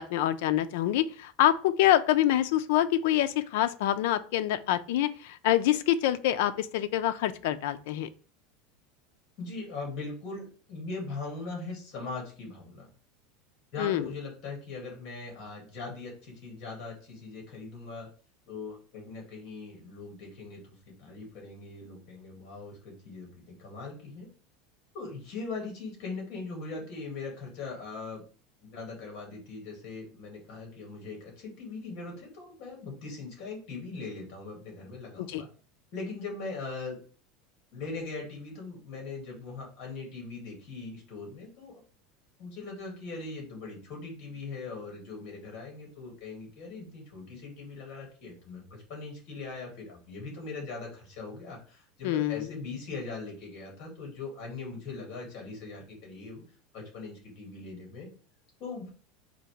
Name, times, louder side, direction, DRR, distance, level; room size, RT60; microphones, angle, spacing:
voice 1, 0.0-8.1 13.8-14.1 35.3-35.4 52.0-52.5, left 12 dB, 60° left, 10 dB, 0.4 m, -26 dB
voice 2, 9.4-12.9 13.7-18.1 18.5-24.3 24.9-28.2 28.6-35.5 35.9-37.0 37.7-41.8 42.4-56.4 56.7-58.1 58.6-58.9, left 3 dB, 35° left, 0 dB, 1.9 m, -40 dB
3.9 x 2.8 x 4.6 m, 0.40 s
supercardioid pair, 180°, 0 cm